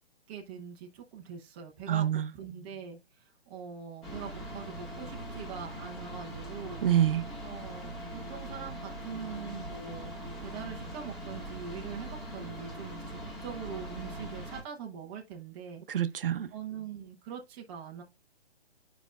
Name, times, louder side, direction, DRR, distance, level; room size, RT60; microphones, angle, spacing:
voice 1, 0.3-2.1 2.3-6.9 7.4-15.8 16.5-18.0, right 7 dB, 10° right, 0.4 m, -43 dB
voice 2, 1.9-2.3 6.8-7.3 15.9-16.5, right 11 dB, 60° right, 0.6 m, -26 dB
sound 1, 4.0-14.6, equal, 20° left, 1.6 m, -41 dB
8.9 x 5.0 x 2.4 m
figure-of-eight pair, 130°, 31 cm